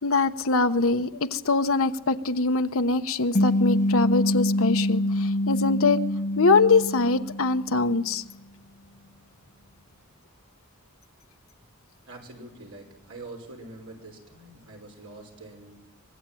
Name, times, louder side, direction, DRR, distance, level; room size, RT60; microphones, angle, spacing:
voice 1, 0.0-6.0 6.4-8.2, left 3 dB, 70° left, 8 dB, 1.1 m, -23 dB
sound 1, 3.3-8.0, left 1 dB, 35° left, 1.0 m, -25 dB
voice 2, 12.1-15.8, right 2 dB, 70° right, 2 dB, 5.9 m, -44 dB
24.5 x 21.0 x 9.3 m, 0.94 s
head